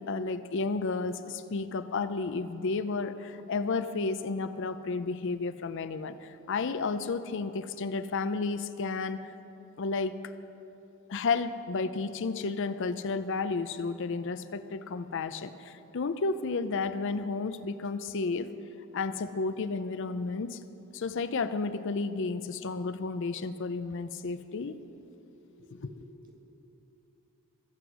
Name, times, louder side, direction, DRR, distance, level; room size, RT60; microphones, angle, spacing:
voice 1, 0.0-9.2 9.8-10.2 11.1-18.5 18.9-20.6 20.9-24.7 25.8-25.9, left 4 dB, 55° left, 12 dB, 0.5 m, -32 dB
voice 2, 25.4-26.3, equal, 40° right, -1 dB, 2.3 m, -54 dB
22.0 x 7.9 x 6.1 m, 2.9 s
head